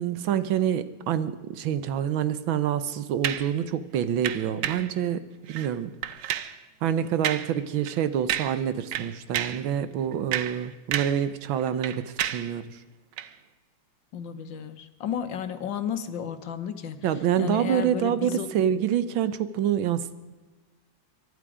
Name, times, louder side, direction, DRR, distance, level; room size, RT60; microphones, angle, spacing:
voice 1, 0.0-5.9 6.8-12.8 17.0-20.2, right 9 dB, 90° right, 14 dB, 1.7 m, -27 dB
sound 1, 3.2-3.5 4.2-4.9 5.5-5.7 6.0-6.6 7.2-7.5 7.8-8.0 8.3-8.7 8.9-9.7 10.1-11.3 11.5-12.5 13.1-13.3, right 11 dB, 70° right, 1.4 m, -31 dB
voice 2, 14.1-17.1 17.4-18.5, left 8 dB, 70° left, 9 dB, 1.8 m, -33 dB
23.5 x 11.5 x 5.0 m, 1.2 s
omnidirectional pair, 2.1 m